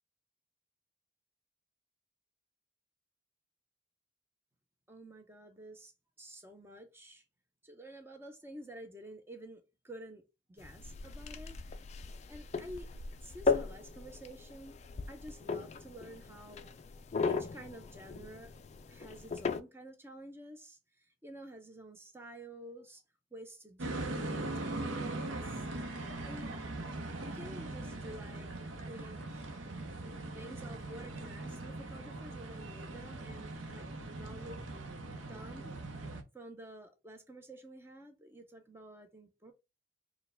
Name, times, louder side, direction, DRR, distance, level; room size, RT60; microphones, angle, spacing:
voice 1, 4.9-5.9 6.2-7.2 7.6-10.2 10.5-11.6 12.3-12.9 13.2-14.8 15.1-16.7 17.2-18.5 18.9-23.0 23.3-25.7 25.9-26.5 27.3-29.5 30.3-34.6 35.2-35.7 36.3-39.5, right 1 dB, 10° right, 0.6 m, -50 dB
sound 1, 10.6-19.6, left 4 dB, 35° left, 0.3 m, -37 dB
sound 2, 23.8-36.2, right 2 dB, 90° right, 0.7 m, -41 dB
4.5 x 2.2 x 3.4 m
head